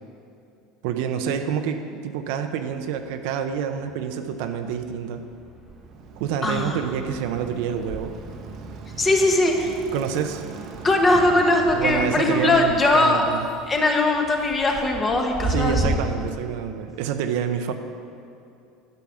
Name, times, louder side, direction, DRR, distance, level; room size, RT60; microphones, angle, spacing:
voice 1, 0.8-5.2 6.2-8.1 9.6-10.5 11.7-13.5 15.5-17.7, right 8 dB, 75° right, 7 dB, 0.7 m, -27 dB
sound 1, 3.0-3.9 4.3-16.0, right 2 dB, 20° right, 1.4 m, -36 dB
Bicycle, 5.6-13.2, right 5 dB, 50° right, 0.9 m, -40 dB
voice 2, 6.4-6.8 9.0-9.7 10.8-13.2 13.7-16.0, left 2 dB, 20° left, 2 dB, 1.1 m, -20 dB
10.5 x 5.8 x 6.3 m, 2.6 s
supercardioid pair, 135°, 0 cm